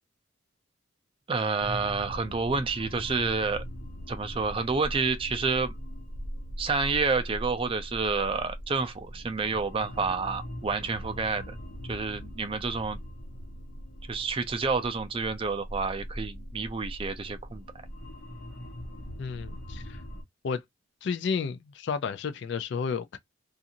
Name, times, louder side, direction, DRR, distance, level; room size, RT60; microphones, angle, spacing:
voice 1, 1.3-3.6 4.1-5.7 6.6-11.6 11.9-13.0 14.1-17.6, right 4 dB, 25° right, 0.4 m, -29 dB
sound 1, 1.6-20.2, equal, 85° left, 0.8 m, -41 dB
voice 2, 19.2-20.0 20.4-20.6 21.0-23.2, left 5 dB, 60° left, 0.3 m, -32 dB
2.5 x 2.4 x 2.7 m
head